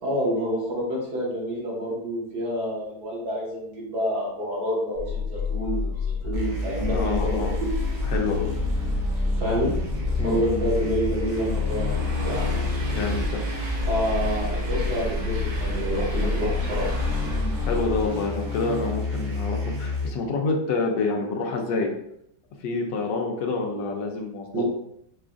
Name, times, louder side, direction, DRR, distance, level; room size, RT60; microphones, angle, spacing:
voice 1, 0.0-7.7 9.3-9.7 10.2-12.4 13.9-16.9 24.5-24.6, equal, 65° right, -5 dB, 1.7 m, -28 dB
sound 1, 4.9-18.1, left 5 dB, 60° left, 0.7 m, -29 dB
sound 2, 6.3-20.1, equal, 80° right, 1.5 m, -30 dB
voice 2, 6.9-7.6 8.0-8.6 10.2-10.6 12.9-13.4 17.6-21.9 22.6-24.6, left 3 dB, 85° left, 2 dB, 1.3 m, -27 dB
Train, 9.8-19.0, right 1 dB, 35° right, 0.7 m, -39 dB
4.9 x 2.3 x 2.5 m, 0.75 s
omnidirectional pair, 1.9 m